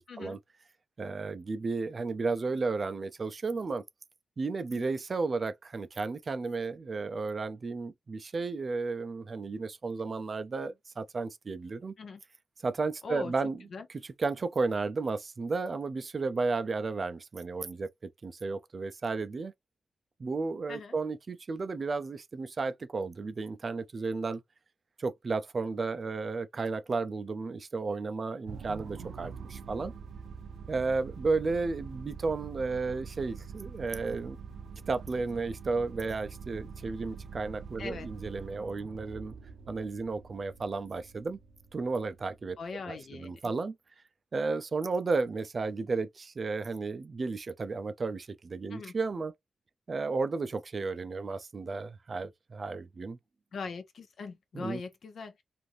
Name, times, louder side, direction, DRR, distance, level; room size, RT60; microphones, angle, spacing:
voice 1, 0.1-0.4 4.7-4.9 12.0-12.2 13.0-13.3 13.7-13.9 20.7-21.0 37.8-38.1 42.6-43.5 48.7-48.9 53.5-55.4, left 4 dB, 60° left, 0.7 m, -41 dB
voice 2, 1.0-3.8 4.4-11.9 12.6-13.6 13.9-17.9 18.2-19.5 20.2-24.4 25.0-29.9 30.7-34.4 34.9-39.3 39.7-41.4 41.7-42.6 42.8-43.7 44.3-49.3 49.9-53.2 54.5-54.8, right 4 dB, 40° right, 0.4 m, -33 dB
sound 1, 28.5-42.9, right 6 dB, 85° right, 0.6 m, -45 dB
3.2 x 2.5 x 2.5 m
wide cardioid pair, 145°, 0 cm